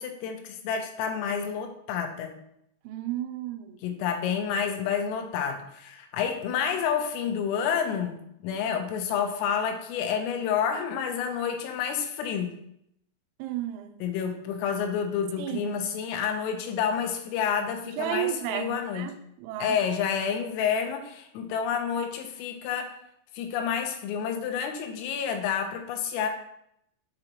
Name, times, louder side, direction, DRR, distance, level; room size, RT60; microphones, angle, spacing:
voice 1, 0.0-2.4 3.8-12.6 14.0-19.1 19.6-22.9 23.3-26.3, left 7 dB, 85° left, 3.3 m, -29 dB
voice 2, 2.8-3.8 13.4-14.0 15.4-15.7 18.0-19.8, right 13 dB, 90° right, 3.3 m, -33 dB
7.1 x 5.1 x 2.9 m
omnidirectional pair, 6.0 m